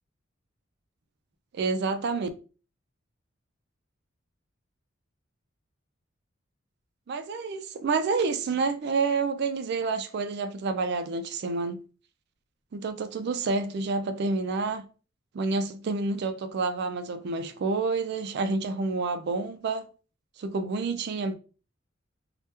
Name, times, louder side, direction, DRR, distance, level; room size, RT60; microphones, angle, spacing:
voice 1, 1.5-2.3 7.1-11.8 12.7-14.9 15.3-19.9 20.4-21.3, right 4 dB, 55° right, 0.4 m, -28 dB
2.9 x 2.2 x 3.3 m
head